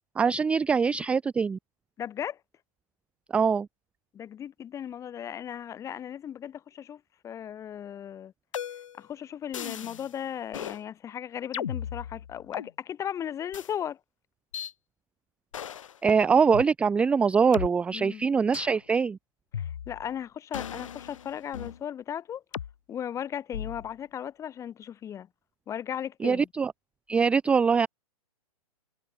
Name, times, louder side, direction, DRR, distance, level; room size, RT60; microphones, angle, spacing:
voice 1, 0.2-1.6 3.3-3.7 16.0-19.2 26.2-26.7 27.1-27.9, right 5 dB, 5° right, 0.5 m, -23 dB
voice 2, 2.0-2.4 4.1-8.3 9.0-14.0 17.9-18.3 19.5-22.4 22.9-25.3 25.7-26.5, left 9 dB, 15° left, 1.5 m, -36 dB
sound 1, 8.5-9.0 9.5-10.1 10.5-10.8 11.5-12.7 13.5-13.7 14.5-14.7 15.5-16.0 16.5-16.6 17.5-17.7 18.5-18.8 19.5-20.1 20.5-21.8 22.5-22.7 23.5-23.9, left 9 dB, 55° left, 1.0 m, -36 dB
figure-of-eight pair, 115°, 20 cm